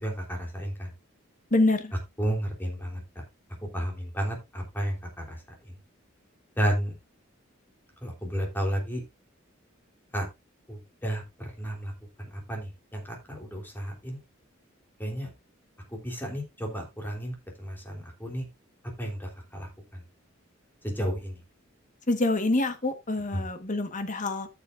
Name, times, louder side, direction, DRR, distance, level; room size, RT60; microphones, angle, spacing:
voice 1, 0.0-0.9 2.2-3.2 3.7-5.4 6.6-6.9 8.0-9.0 10.1-10.3 10.7-11.9 12.2-14.2 15.0-15.3 15.9-18.4 19.0-20.0 20.8-21.4 23.3-23.4, equal, 10° left, 3.4 m, -32 dB
voice 2, 1.5-1.9 22.1-24.5, left 2 dB, 40° left, 1.4 m, -26 dB
14.5 x 6.8 x 2.5 m
head